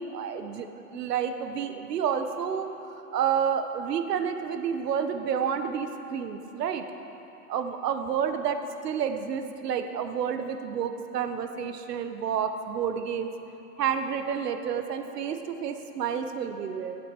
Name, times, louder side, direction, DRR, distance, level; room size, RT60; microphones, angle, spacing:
voice 1, 0.0-6.8 7.5-13.3 13.8-17.0, right 7 dB, 85° right, 7 dB, 1.1 m, -30 dB
15.5 x 8.1 x 4.5 m, 3.0 s
hypercardioid pair, 145°, 47 cm